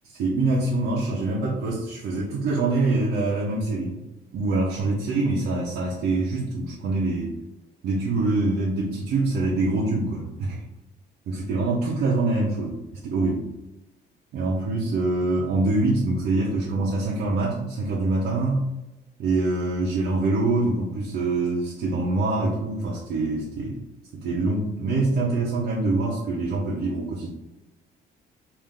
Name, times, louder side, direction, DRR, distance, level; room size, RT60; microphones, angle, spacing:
voice 1, 0.0-4.0 4.3-7.3 7.8-10.6 11.3-12.8 13.0-13.5 14.3-18.6 19.2-23.8 24.1-27.3, right 2 dB, 85° right, -5 dB, 0.8 m, -25 dB
3.5 x 2.6 x 3.6 m, 1.0 s
cardioid pair, 155°, 17 cm